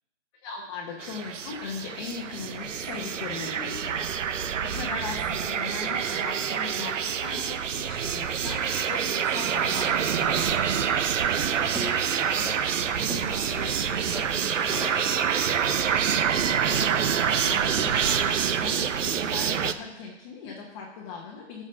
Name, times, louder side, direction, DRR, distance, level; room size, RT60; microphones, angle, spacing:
voice 1, 0.4-10.8 16.7-21.6, left 5 dB, 25° left, -2 dB, 1.3 m, -39 dB
sound 1, 1.0-19.7, right 8 dB, 80° right, 0.8 m, -27 dB
voice 2, 11.6-16.0, right 1 dB, 5° right, 0 dB, 0.8 m, -38 dB
14.0 x 5.2 x 5.7 m, 1.1 s
hypercardioid pair, 160°, 37 cm